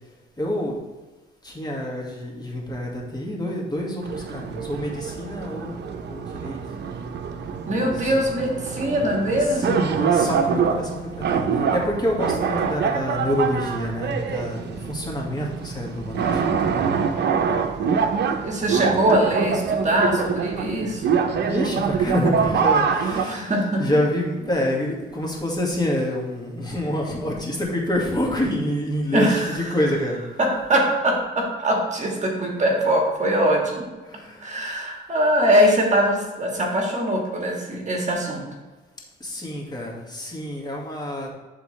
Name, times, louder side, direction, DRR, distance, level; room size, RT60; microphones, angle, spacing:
voice 1, 0.4-0.8 1.4-5.8 6.1-6.8 8.0-8.1 9.3-17.1 21.4-23.5 23.8-30.2 34.1-34.7 39.2-41.3, left 1 dB, 20° left, -2 dB, 1.9 m, -27 dB
sound 1, 4.0-23.3, right 6 dB, 60° right, 0.7 m, -25 dB
voice 2, 7.7-9.9 18.4-21.0 23.2-23.8 29.1-29.6 30.4-33.8 34.4-38.4, right 1 dB, 35° right, 0 dB, 1.6 m, -22 dB
11.0 x 3.8 x 3.3 m, 1.2 s
cardioid pair, 90°, 20 cm